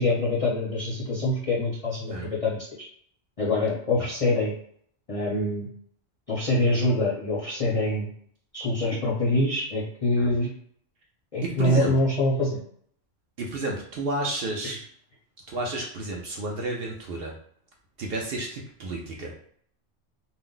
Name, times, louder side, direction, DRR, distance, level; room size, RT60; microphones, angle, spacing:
voice 1, 0.0-2.9 3.4-4.5 5.1-5.7 6.3-8.1 8.5-10.5 11.3-12.6 14.6-14.7, left 2 dB, 40° left, -5 dB, 0.5 m, -25 dB
voice 2, 11.4-11.9 13.4-14.9 15.5-17.4 18.0-19.3, right 2 dB, 60° right, -1 dB, 0.7 m, -31 dB
2.5 x 2.1 x 3.7 m, 0.64 s
omnidirectional pair, 1.3 m